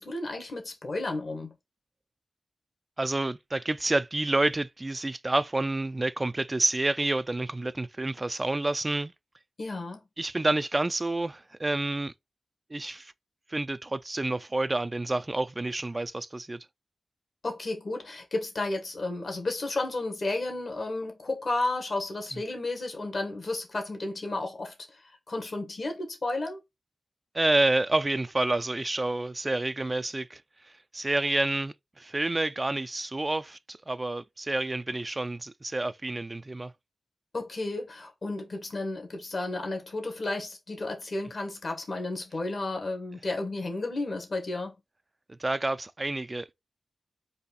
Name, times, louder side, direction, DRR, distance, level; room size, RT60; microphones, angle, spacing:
voice 1, 0.0-1.5 9.6-10.0 17.4-24.7 25.3-26.6 37.3-44.7, left 2 dB, 60° left, 1.5 m, -32 dB
voice 2, 3.0-9.1 10.2-12.1 12.7-13.1 13.5-16.7 22.3-22.4 27.3-36.7 45.3-46.5, right 2 dB, 30° right, 0.4 m, -29 dB
4.1 x 2.7 x 4.1 m
cardioid pair, 40°, 0 cm